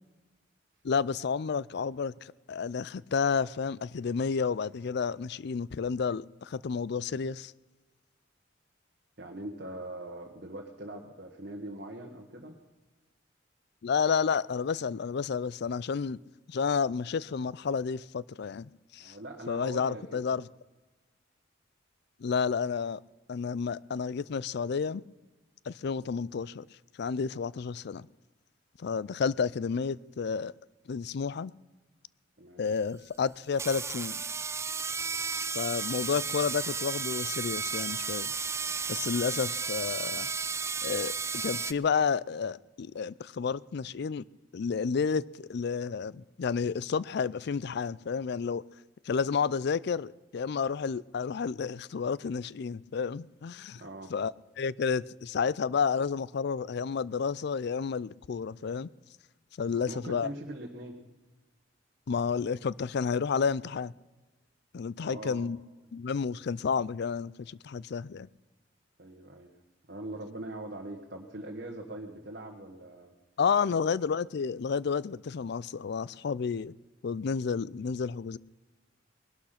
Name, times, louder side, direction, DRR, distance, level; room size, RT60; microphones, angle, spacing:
voice 1, 0.8-7.5 13.8-16.2 16.5-19.1 19.5-20.5 22.2-23.0 23.3-25.0 25.7-26.7 27.0-28.1 28.8-30.5 30.9-31.5 32.6-34.2 35.5-38.3 38.9-40.3 40.8-44.2 44.5-48.6 49.1-53.8 54.1-58.9 59.6-60.3 62.1-63.9 64.7-65.6 65.9-68.3 73.4-76.7 77.0-78.4, left 6 dB, 60° left, 0.4 m, -31 dB
voice 2, 9.2-12.6 19.0-20.2 32.4-32.6 39.0-39.2 53.8-54.1 59.8-61.0 65.0-65.5 69.0-69.5 69.9-73.1, right 1 dB, 55° right, 1.5 m, -42 dB
sound 1, 32.8-32.9 33.5-41.7, right 5 dB, 15° right, 0.4 m, -33 dB
20.0 x 12.0 x 5.8 m
head